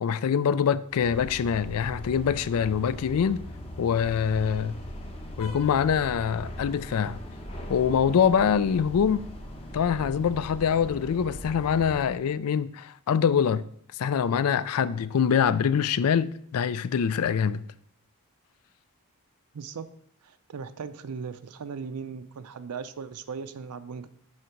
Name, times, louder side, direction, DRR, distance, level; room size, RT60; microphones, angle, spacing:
voice 1, 0.0-3.4 3.8-4.8 5.4-7.2 7.7-9.3 9.7-13.7 14.0-17.6, left 7 dB, 70° left, 0.4 m, -24 dB
sound 1, 0.9-12.1, left 1 dB, 25° left, 1.0 m, -40 dB
voice 2, 19.5-19.9 20.2-24.1, right 5 dB, 80° right, 0.5 m, -38 dB
6.5 x 5.7 x 4.5 m
head